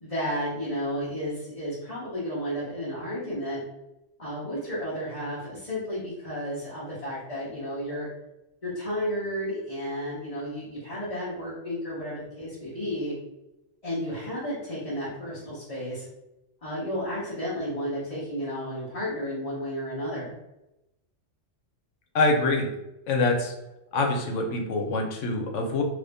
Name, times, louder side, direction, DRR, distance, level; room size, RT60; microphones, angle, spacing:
voice 1, 0.0-3.6 4.2-8.1 8.6-13.1 13.8-16.0 16.6-20.3, equal, 35° left, -9 dB, 0.9 m, -32 dB
voice 2, 22.1-22.7 23.1-23.5 23.9-25.8, left 2 dB, 90° left, 2 dB, 1.0 m, -25 dB
2.9 x 2.6 x 3.4 m, 0.93 s
omnidirectional pair, 1.2 m